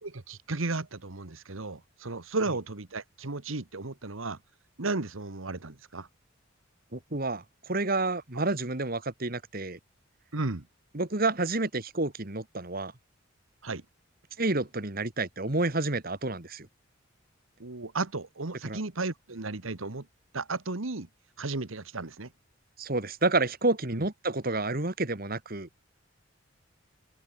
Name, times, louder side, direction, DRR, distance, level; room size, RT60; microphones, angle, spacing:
voice 1, 0.0-4.4 4.8-6.1 8.3-8.4 10.3-10.7 13.6-13.8 17.6-20.1 20.3-21.1 21.4-22.3 23.9-24.0, right 3 dB, 85° right, 1.5 m, -34 dB
voice 2, 6.9-9.8 10.9-12.9 14.4-16.7 18.6-18.8 22.8-25.7, right 2 dB, 45° right, 2.1 m, -29 dB
head